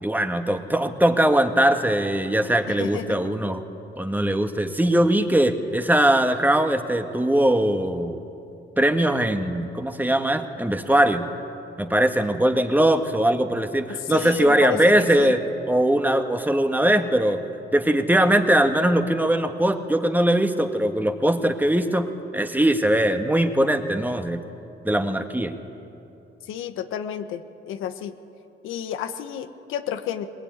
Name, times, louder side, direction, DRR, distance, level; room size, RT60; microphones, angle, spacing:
voice 1, 0.0-3.6 4.0-8.2 8.8-11.3 11.8-15.4 15.7-17.4 17.7-22.1 22.3-24.4 24.9-25.6, right 1 dB, 10° right, 6 dB, 1.7 m, -21 dB
voice 2, 2.7-3.3 14.1-15.3 26.5-28.1 28.6-30.3, left 9 dB, 90° left, 9 dB, 1.2 m, -31 dB
20.5 x 20.5 x 9.7 m, 2.8 s
cardioid pair, 90°, 20 cm